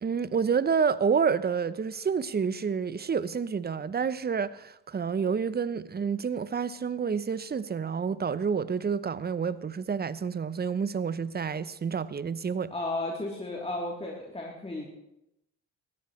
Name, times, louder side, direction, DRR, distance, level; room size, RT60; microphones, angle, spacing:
voice 1, 0.0-12.7, right 6 dB, 25° right, 0.7 m, -29 dB
voice 2, 12.7-14.8, left 2 dB, 15° left, 3.3 m, -34 dB
19.5 x 14.0 x 3.2 m
hypercardioid pair, 55°, 42 cm